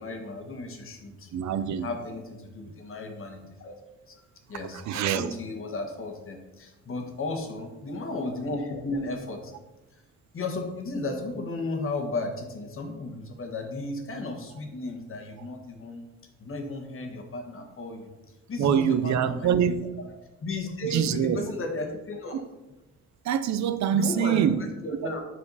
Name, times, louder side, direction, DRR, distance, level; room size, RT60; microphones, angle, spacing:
voice 1, 0.0-1.3 1.8-3.7 4.1-4.2 4.5-9.5 10.3-16.0 16.4-18.1 18.5-19.9 20.4-22.4 23.9-25.2, left 2 dB, 45° left, 1.5 m, -34 dB
voice 2, 1.3-1.9 4.7-5.3 18.6-19.9 20.8-21.5 22.3-22.4 23.2-24.6, right 8 dB, 65° right, 0.6 m, -25 dB
7.6 x 4.9 x 4.1 m
cardioid pair, 90°, 30 cm